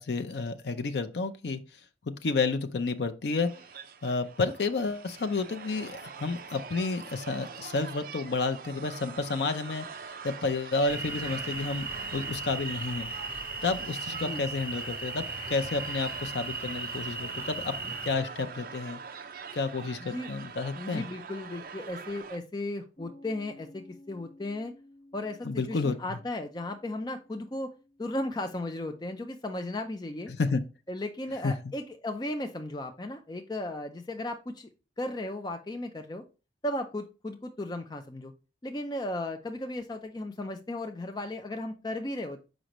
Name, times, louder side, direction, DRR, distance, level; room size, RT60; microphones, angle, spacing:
voice 1, 0.0-1.6 2.1-3.5 4.0-9.9 10.2-13.1 13.6-19.0 19.5-21.1 25.4-26.2 30.4-30.6 31.4-31.5, left 3 dB, 75° left, 0.5 m, -30 dB
sound 1, 3.4-22.4, right 5 dB, 50° right, 0.5 m, -44 dB
sound 2, 10.9-18.1, right 3 dB, 15° right, 1.2 m, -37 dB
voice 2, 14.1-14.4 20.1-20.3 20.8-24.7 25.1-27.7 28.0-30.3 30.9-34.7 35.0-36.2 36.6-38.3 38.6-42.4, left 1 dB, 25° left, 0.4 m, -35 dB
Piano, 23.0-30.2, left 1 dB, 40° left, 1.0 m, -56 dB
6.4 x 5.0 x 3.0 m
head